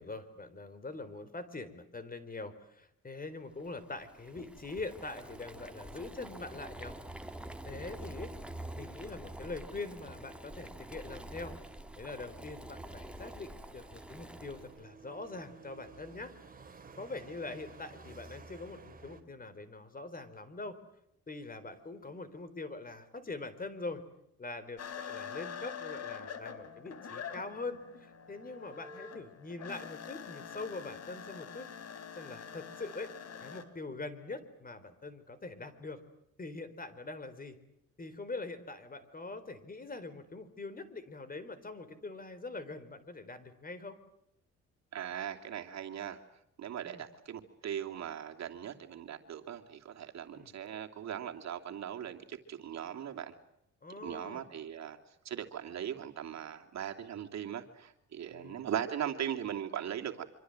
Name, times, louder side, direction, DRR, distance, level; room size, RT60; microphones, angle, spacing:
voice 1, 0.0-7.0 7.2-8.3 8.7-11.6 12.0-16.3 17.0-20.8 21.3-24.0 24.4-31.7 32.2-33.1 33.4-36.0 36.4-37.6 38.0-44.0 46.8-47.0 50.3-50.5 53.8-54.5 58.3-58.6, left 3 dB, 30° left, 13 dB, 4.1 m, -43 dB
Boiling, 3.6-14.8, right 1 dB, 5° right, 2.3 m, -47 dB
sound 1, 5.2-19.2, right 4 dB, 30° right, 4.1 m, -56 dB
sound 2, 24.8-33.6, left 7 dB, 60° left, 3.6 m, -45 dB
voice 2, 44.9-46.2 46.6-53.3 54.0-55.0 55.2-60.2, right 9 dB, 65° right, 4 dB, 2.9 m, -39 dB
25.5 x 25.5 x 7.9 m, 0.79 s
cardioid pair, 90°, 30 cm